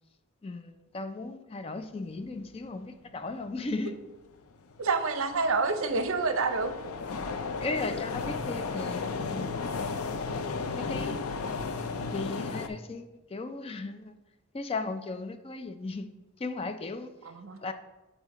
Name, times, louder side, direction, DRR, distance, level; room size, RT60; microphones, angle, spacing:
voice 1, 0.4-4.0 7.6-10.1 10.7-11.2 12.1-14.1 14.5-16.1 16.4-17.1 17.6-17.7, left 3 dB, 25° left, 0.3 m, -36 dB
sound 1, 4.0-4.1 4.7-12.7, left 4 dB, 85° left, 0.5 m, -34 dB
voice 2, 4.8-6.7 17.2-17.6, right 4 dB, 70° right, 0.6 m, -28 dB
7.3 x 4.0 x 4.8 m
head